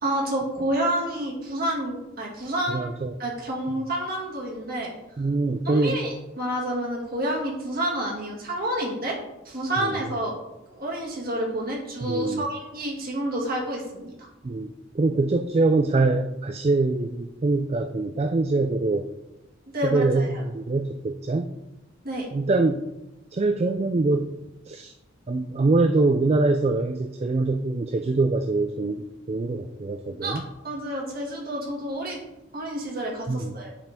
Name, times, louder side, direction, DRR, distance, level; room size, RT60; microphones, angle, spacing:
voice 1, 0.0-4.9 5.6-9.2 9.4-10.4 10.7-14.3 19.7-20.4 22.0-22.3 30.2-32.2 32.5-33.7, right 1 dB, 50° right, -2 dB, 2.4 m, -29 dB
voice 2, 2.7-3.1 5.2-6.0 9.8-10.1 12.0-12.4 14.4-19.1 19.8-21.5 22.3-22.9 23.3-24.3 24.7-24.9 25.3-30.4 33.3-33.6, right 3 dB, 30° right, 7 dB, 0.3 m, -24 dB
10.5 x 4.9 x 3.7 m, 0.94 s
head